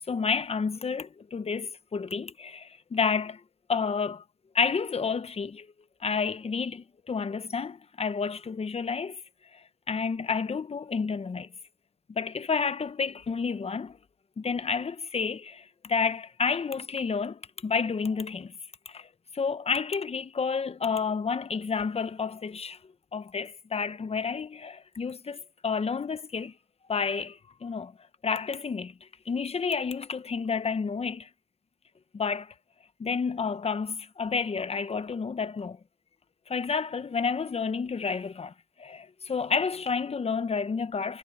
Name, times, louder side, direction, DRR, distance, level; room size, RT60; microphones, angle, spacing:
voice 1, 0.1-3.4 3.7-4.2 4.5-5.7 6.0-9.2 9.5-11.5 12.1-14.0 14.4-18.5 18.9-19.1 19.3-22.8 23.1-26.5 26.9-27.9 28.2-28.9 29.3-31.3 32.1-32.5 33.0-35.8 36.5-38.5 38.8-41.2, left 5 dB, 30° left, 1.0 m, -30 dB
cardioid pair, 90°, 20 cm